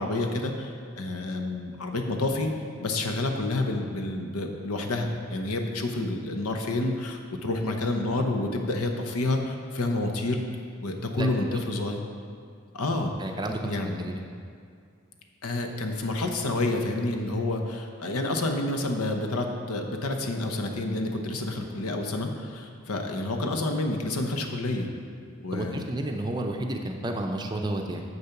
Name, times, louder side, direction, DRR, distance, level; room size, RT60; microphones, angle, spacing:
voice 1, 0.0-2.5 2.8-10.4 10.8-12.0 12.7-13.1 13.7-14.0 15.4-24.9 25.4-25.9, left 2 dB, 90° left, 4 dB, 0.9 m, -29 dB
voice 2, 13.2-14.2 25.5-28.0, right 1 dB, 20° right, 3 dB, 0.5 m, -31 dB
7.2 x 6.7 x 5.8 m, 2.3 s
head